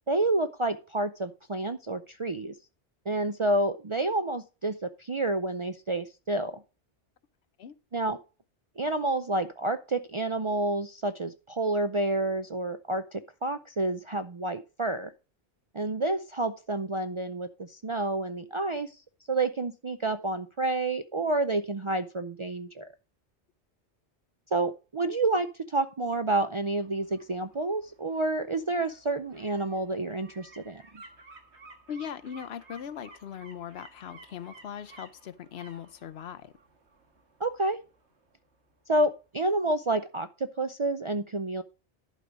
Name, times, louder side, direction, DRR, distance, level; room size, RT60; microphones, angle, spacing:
voice 1, 0.1-2.5 3.1-6.6 7.9-8.2 8.8-15.1 15.7-18.9 19.3-22.9 24.5-30.8 37.4-37.8 38.9-41.6, right 2 dB, 40° right, 0.4 m, -29 dB
sound 1, 26.5-39.3 39.6-39.7, right 3 dB, 75° right, 1.9 m, -55 dB
voice 2, 31.9-36.5, left 8 dB, 65° left, 0.9 m, -40 dB
11.5 x 4.9 x 5.1 m
omnidirectional pair, 1.2 m